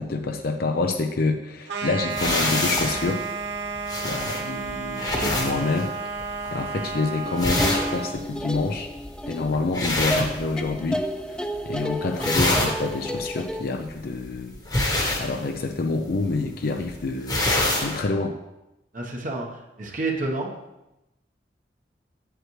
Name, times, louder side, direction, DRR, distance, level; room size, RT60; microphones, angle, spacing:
voice 1, 0.0-3.2 4.0-6.2 6.5-8.9 9.3-11.4 11.6-17.5 17.8-18.3, left 3 dB, 60° left, 5 dB, 0.5 m, -27 dB
sound 1, 1.7-8.2, right 4 dB, 80° right, 0.9 m, -32 dB
sound 2, 2.1-11.1 11.3-11.8 12.0-18.0, left 1 dB, 25° left, 1.1 m, -28 dB
voice 2, 5.0-5.4 18.9-20.5, right 2 dB, 50° right, 0 dB, 1.0 m, -30 dB
sound 3, 7.2-13.6, equal, 5° left, 0.4 m, -31 dB
8.0 x 7.8 x 3.1 m, 0.93 s
head